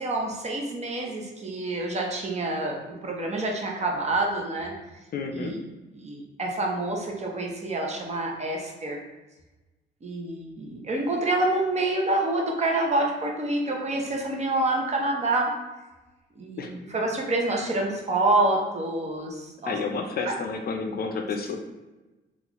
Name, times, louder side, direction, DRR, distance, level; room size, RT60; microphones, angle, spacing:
voice 1, 0.0-4.7 5.3-5.5 5.9-9.0 10.0-15.5 16.4-19.7 20.2-20.3, right 2 dB, 35° right, 0 dB, 0.7 m, -27 dB
voice 2, 5.1-5.6 16.6-16.7 19.6-21.6, left 4 dB, 50° left, 4 dB, 0.5 m, -30 dB
3.7 x 2.5 x 2.9 m, 1.1 s
cardioid pair, 90°, 20 cm